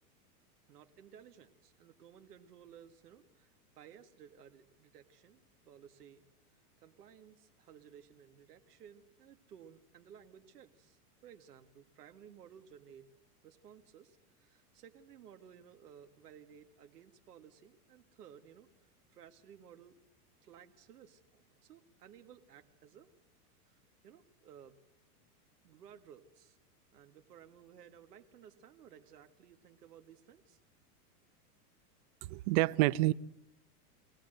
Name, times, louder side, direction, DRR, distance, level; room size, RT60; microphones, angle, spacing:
voice 1, 0.7-5.4 5.7-6.2 6.8-13.1 13.4-18.7 19.1-20.0 20.4-23.1 23.6-24.8 25.6-26.6 26.9-30.6, right 8 dB, 90° right, 2.0 m, -57 dB
voice 2, 32.2-33.1, right 18 dB, 45° right, 0.7 m, -28 dB
24.5 x 18.5 x 7.8 m
supercardioid pair, 135°, 46 cm